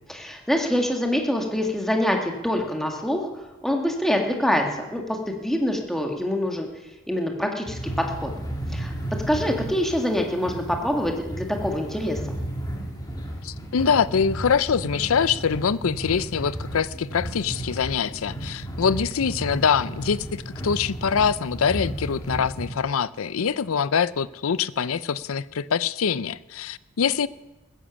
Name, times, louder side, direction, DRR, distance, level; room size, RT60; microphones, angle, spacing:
voice 1, 0.1-4.6 4.9-6.7 7.1-7.8 8.1-8.3 8.7-8.9 9.3-12.2, left 1 dB, ahead, 1 dB, 1.7 m, -25 dB
sound 1, 7.7-22.7, right 1 dB, 20° left, 2.3 m, -34 dB
voice 2, 13.4-27.3, left 6 dB, 75° left, 18 dB, 0.5 m, -24 dB
15.5 x 10.0 x 7.1 m, 1.1 s
head